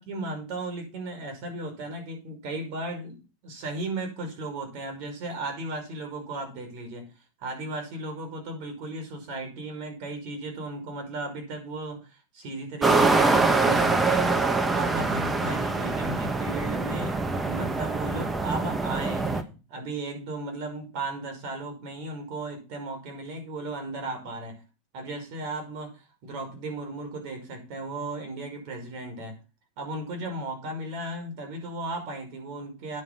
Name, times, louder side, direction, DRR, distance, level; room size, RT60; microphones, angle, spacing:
voice 1, 0.0-7.1 7.4-24.6 24.9-29.4 29.8-33.0, right 2 dB, 55° right, 5.3 m, -36 dB
sound 1, 12.8-19.4, right 3 dB, 15° right, 1.1 m, -24 dB
9.6 x 6.9 x 5.6 m
supercardioid pair, 140°, 0 cm